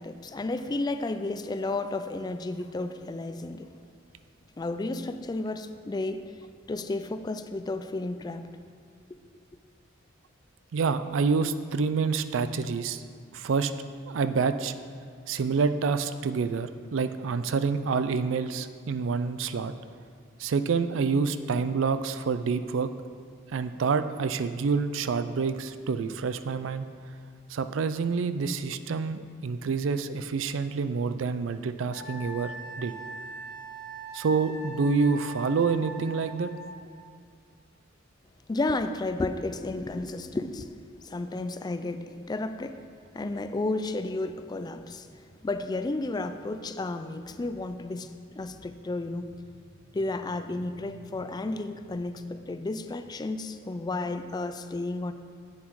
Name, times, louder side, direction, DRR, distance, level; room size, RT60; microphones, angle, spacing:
voice 1, 0.0-3.7 4.6-6.3 6.7-8.5 38.5-40.7 41.0-42.8 43.1-45.1 45.4-48.1 48.4-49.3 49.9-55.1, left 2 dB, 20° left, 10 dB, 0.3 m, -32 dB
voice 2, 10.7-13.0 13.3-13.7 14.1-14.7 15.3-19.7 20.4-22.9 23.5-26.9 27.5-32.9 34.1-36.5, right 5 dB, 75° right, 11 dB, 0.4 m, -27 dB
Wind instrument woodwind instrument, 31.9-36.8, right 1 dB, 75° left, 2.4 m, -41 dB
8.2 x 7.2 x 4.7 m, 2.1 s
head